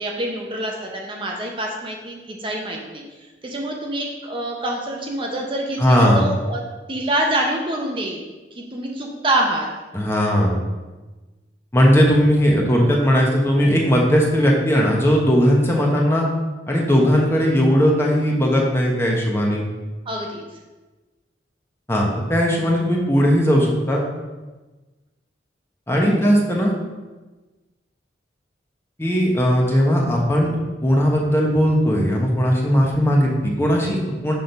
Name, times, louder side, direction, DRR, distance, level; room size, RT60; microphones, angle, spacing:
voice 1, 0.0-3.0 3.4-6.6 6.9-8.2 8.5-9.7 20.1-20.5 26.0-26.3, right 1 dB, 30° right, 0 dB, 0.7 m, -26 dB
voice 2, 5.8-6.3 9.9-10.6 11.7-16.3 16.7-19.6 21.9-24.0 25.9-26.7 29.0-30.5 30.8-34.3, equal, 15° left, -2 dB, 0.9 m, -18 dB
6.0 x 3.6 x 5.3 m, 1.2 s
head